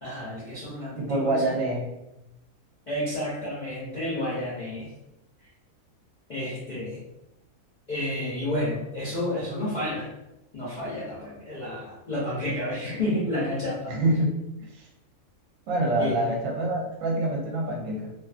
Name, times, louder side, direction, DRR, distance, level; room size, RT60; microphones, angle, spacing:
voice 1, 0.0-1.5 2.9-4.9 6.3-7.0 7.9-10.1 10.5-13.9 16.0-16.3, left 1 dB, 55° left, -9 dB, 0.5 m, -30 dB
voice 2, 1.0-1.9 13.9-14.3 15.7-18.1, right 1 dB, 65° right, 0 dB, 0.9 m, -26 dB
2.5 x 2.4 x 2.4 m, 0.91 s
omnidirectional pair, 1.6 m